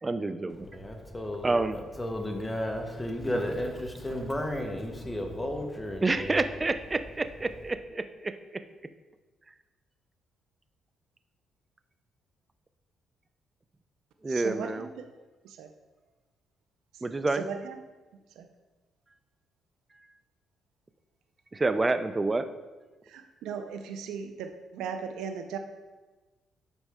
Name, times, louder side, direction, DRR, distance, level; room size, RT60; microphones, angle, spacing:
voice 1, 0.0-0.7 1.4-1.8 6.0-8.6 14.2-14.9 17.0-17.4 21.5-22.5, right 3 dB, 25° right, 10 dB, 0.5 m, -28 dB
voice 2, 0.7-6.3, left 1 dB, 10° left, 3 dB, 1.1 m, -33 dB
voice 3, 14.2-15.1 15.4-15.7 17.3-17.8 18.4-18.5 23.0-25.6, right 6 dB, 85° right, 6 dB, 0.5 m, -37 dB
8.1 x 5.3 x 3.6 m, 1.2 s
cardioid pair, 90°, 0 cm